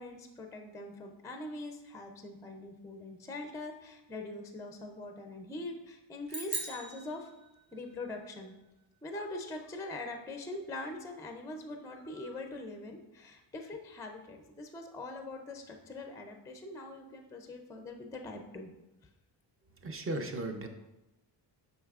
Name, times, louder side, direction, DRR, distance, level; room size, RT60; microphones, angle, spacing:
voice 1, 0.0-7.3 7.7-8.5 9.0-18.7, left 2 dB, 5° left, 4 dB, 0.4 m, -43 dB
sound 1, 6.3-7.9, right 3 dB, 55° right, 1.3 m, -40 dB
voice 2, 19.8-20.7, right 2 dB, 30° right, 6 dB, 0.7 m, -36 dB
7.8 x 5.4 x 2.4 m, 0.97 s
cardioid pair, 125°, 44 cm